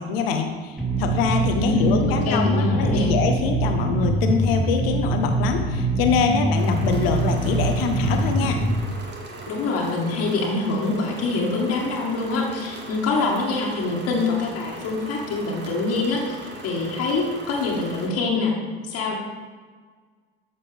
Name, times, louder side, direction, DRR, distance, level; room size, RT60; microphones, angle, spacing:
voice 1, 0.0-8.6, left 6 dB, 70° left, 5 dB, 1.1 m, -24 dB
sound 1, 0.8-8.8, right 2 dB, ahead, 2.1 m, -23 dB
voice 2, 1.5-2.0 2.2-3.1 9.5-18.5 18.8-19.2, left 3 dB, 55° left, -2 dB, 1.9 m, -25 dB
sound 2, 6.5-18.1, right 2 dB, 35° right, 1.8 m, -39 dB
11.5 x 6.9 x 3.5 m, 1.5 s
figure-of-eight pair, 60°, 31 cm